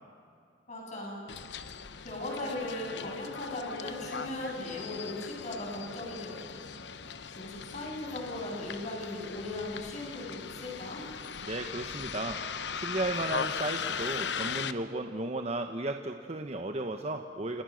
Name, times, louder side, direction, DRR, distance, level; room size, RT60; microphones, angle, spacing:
voice 1, 0.7-1.2 2.0-6.7 7.4-11.0, left 1 dB, 40° left, 0 dB, 7.9 m, -38 dB
Bus, 1.3-14.7, left 6 dB, 70° left, 1.0 m, -39 dB
voice 2, 11.4-12.4 12.7-17.6, right 2 dB, 35° right, 5 dB, 1.2 m, -34 dB
30.0 x 28.0 x 6.5 m, 2.4 s
head